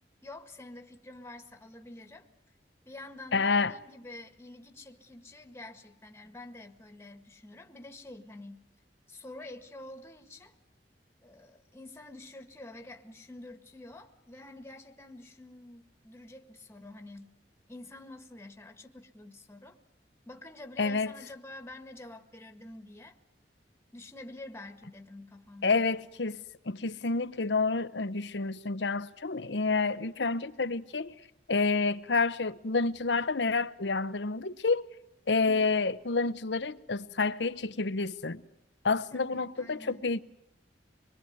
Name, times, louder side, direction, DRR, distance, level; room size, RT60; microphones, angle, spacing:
voice 1, 0.2-2.3 2.8-8.7 9.1-10.5 11.2-17.3 17.7-19.8 20.3-23.1 23.9-25.9 35.4-35.7 39.1-40.0, left 2 dB, 15° left, 1.7 m, -48 dB
voice 2, 3.3-3.7 20.8-21.1 25.6-26.4 26.7-31.1 31.5-34.8 35.3-38.4 38.8-40.2, left 4 dB, 75° left, 0.9 m, -29 dB
25.0 x 22.0 x 9.4 m
head